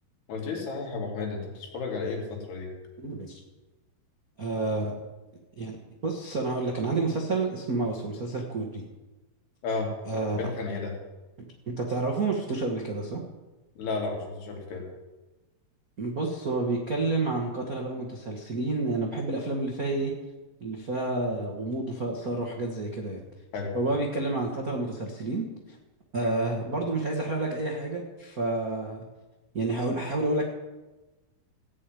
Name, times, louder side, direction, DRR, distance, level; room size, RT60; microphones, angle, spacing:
voice 1, 0.3-2.7 9.6-9.9 10.4-10.9 13.8-14.9 23.5-23.7, left 4 dB, 85° left, 0 dB, 4.6 m, -32 dB
voice 2, 3.0-3.4 4.4-4.9 5.6-5.8 6.0-8.8 10.0-10.4 11.7-13.2 16.0-20.1 20.6-23.2 23.7-25.8 26.1-29.0 29.5-30.4, right 2 dB, 70° right, 0 dB, 0.8 m, -29 dB
16.5 x 6.6 x 9.2 m, 1.1 s
omnidirectional pair, 4.5 m